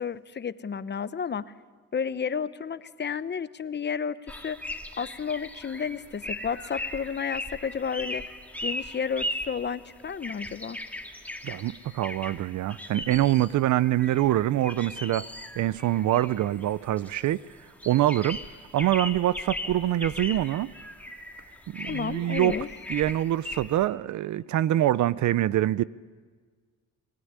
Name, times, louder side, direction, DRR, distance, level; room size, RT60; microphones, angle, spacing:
voice 1, 0.0-1.5 1.9-4.6 5.0-8.3 8.6-10.8 21.8-22.7, left 6 dB, 35° left, 0.9 m, -32 dB
sound 1, 4.3-23.9, left 1 dB, 5° left, 2.2 m, -38 dB
voice 2, 11.4-15.3 15.6-17.4 17.9-18.4 18.7-20.7 21.7-22.5 22.9-25.8, right 13 dB, 70° right, 0.7 m, -25 dB
27.5 x 18.5 x 9.7 m
cardioid pair, 90°, 30 cm